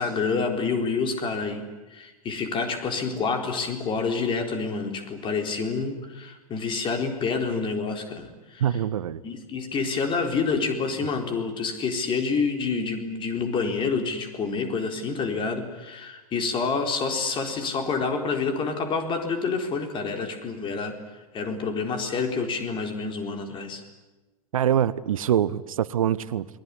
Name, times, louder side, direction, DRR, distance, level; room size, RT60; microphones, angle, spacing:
voice 1, 0.0-8.6 9.2-21.0 21.3-23.8, left 4 dB, 25° left, 5 dB, 4.1 m, -28 dB
voice 2, 8.6-9.2 24.5-26.5, right 10 dB, 60° right, 18 dB, 0.9 m, -24 dB
29.0 x 21.0 x 9.8 m, 1.1 s
figure-of-eight pair, 95°, 19 cm